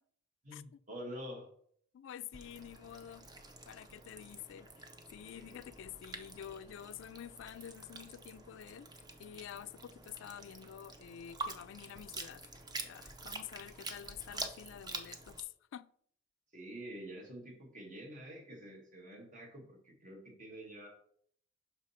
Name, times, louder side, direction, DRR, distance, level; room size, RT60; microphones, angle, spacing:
voice 1, 0.4-1.5 5.3-5.6 16.5-20.9, equal, 40° right, 1.7 m, -47 dB
voice 2, 1.9-3.3 3.7-4.9 5.1-8.9 9.2-12.4 12.8-15.9, left 10 dB, 65° left, 0.3 m, -48 dB
sound 1, 2.3-15.4, right 2 dB, 20° right, 0.6 m, -47 dB
5.9 x 5.0 x 4.2 m
head